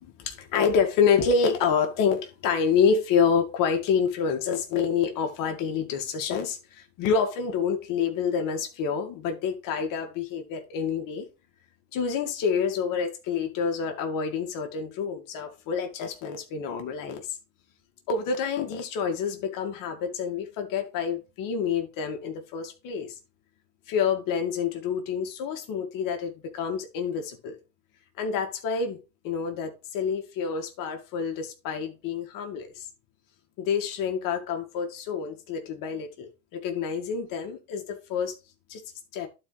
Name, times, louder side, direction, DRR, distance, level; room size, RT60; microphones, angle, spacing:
voice 1, 0.0-11.3 11.9-17.4 18.1-23.2 23.9-27.6 28.2-29.0 29.2-32.9 33.6-38.4 38.7-38.8 39.1-39.3, left 6 dB, 55° left, 2.1 m, -27 dB
11.5 x 4.6 x 3.3 m
supercardioid pair, 95°, 39 cm